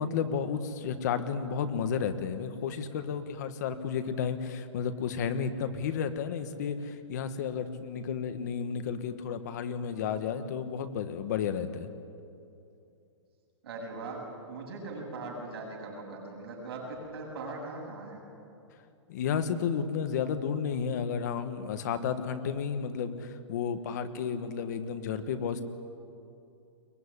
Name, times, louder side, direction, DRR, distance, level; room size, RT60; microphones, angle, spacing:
voice 1, 0.0-11.9 19.1-25.6, left 7 dB, 35° left, 9 dB, 1.4 m, -32 dB
voice 2, 13.6-18.2, right 2 dB, 55° right, 0 dB, 7.5 m, -40 dB
23.0 x 20.5 x 9.9 m, 2.6 s
hypercardioid pair, 175°, 16 cm